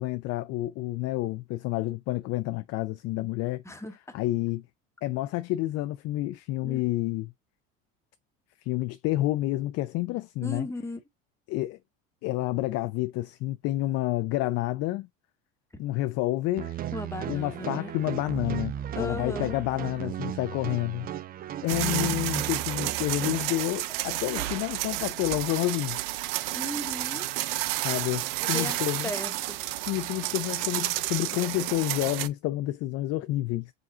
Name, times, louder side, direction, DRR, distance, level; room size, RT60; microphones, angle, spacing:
voice 1, 0.0-3.6 4.1-4.7 5.0-7.3 8.6-10.7 11.5-11.8 12.2-15.1 15.8-16.8 17.3-21.1 21.6-26.0 27.8-29.1 29.9-33.7, left 16 dB, 55° left, 0.4 m, -29 dB
voice 2, 3.6-4.2 6.6-6.8 10.4-11.0 16.9-17.9 18.9-19.6 21.7-22.2 24.2-24.5 26.5-27.3 28.4-29.6, left 2 dB, 10° left, 1.0 m, -37 dB
sound 1, 16.6-23.4, right 10 dB, 30° right, 0.4 m, -35 dB
sound 2, 21.7-32.3, right 16 dB, 90° right, 0.5 m, -31 dB
5.0 x 2.3 x 3.7 m
supercardioid pair, 95°, 30 cm